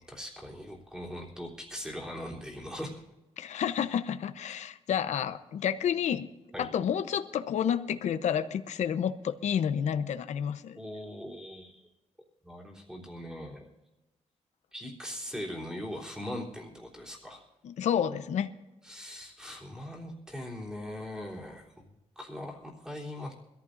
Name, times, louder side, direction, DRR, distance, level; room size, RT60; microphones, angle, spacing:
voice 1, 0.0-3.0 6.5-6.7 10.8-11.8 12.4-13.7 14.7-17.4 18.8-21.9 22.2-23.3, equal, 5° right, -3 dB, 3.4 m, -40 dB
voice 2, 3.4-6.3 6.6-10.8 17.6-18.5, left 8 dB, 70° left, 10 dB, 0.8 m, -30 dB
24.5 x 14.0 x 2.6 m, 1.1 s
wide cardioid pair, 150°, 12 cm